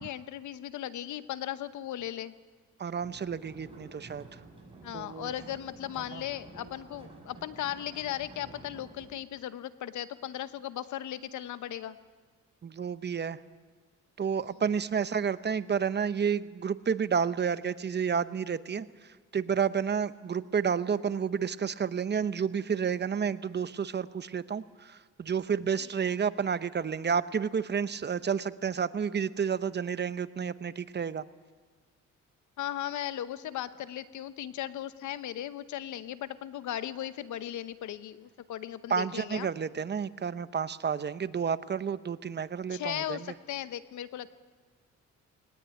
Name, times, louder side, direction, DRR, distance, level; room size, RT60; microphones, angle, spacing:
voice 1, 0.0-2.3 4.8-12.0 25.8-26.2 32.6-39.5 42.7-44.3, left 12 dB, 75° left, 13 dB, 1.0 m, -37 dB
voice 2, 2.8-4.4 4.9-5.3 6.1-6.2 12.6-13.4 14.2-18.9 19.3-31.2 38.9-43.2, right 7 dB, 35° right, 14 dB, 0.8 m, -30 dB
sound 1, 3.0-9.1, right 2 dB, 20° right, 7.1 m, -51 dB
20.0 x 19.0 x 9.1 m, 1.5 s
cardioid pair, 90°, 30 cm